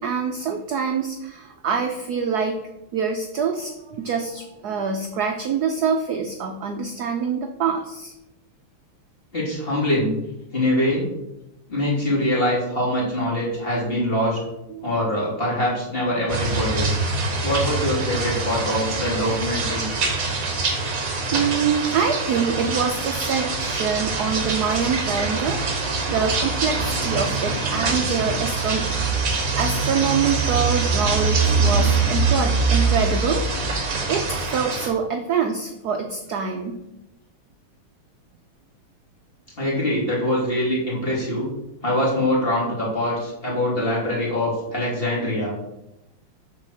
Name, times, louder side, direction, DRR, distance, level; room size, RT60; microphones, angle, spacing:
voice 1, 0.0-2.6 2.9-8.1 14.7-14.9 21.3-25.6 26.1-28.9 29.5-33.4 34.1-36.8, right 6 dB, 65° right, 4 dB, 1.0 m, -25 dB
voice 2, 9.3-10.1 10.5-11.1 11.7-14.4 14.8-16.9 17.4-19.9 39.6-41.5 41.8-45.6, left 1 dB, 25° left, -5 dB, 2.8 m, -23 dB
sound 1, 16.3-34.9, right 3 dB, 45° right, 1.6 m, -24 dB
7.3 x 4.6 x 6.4 m, 0.89 s
omnidirectional pair, 2.3 m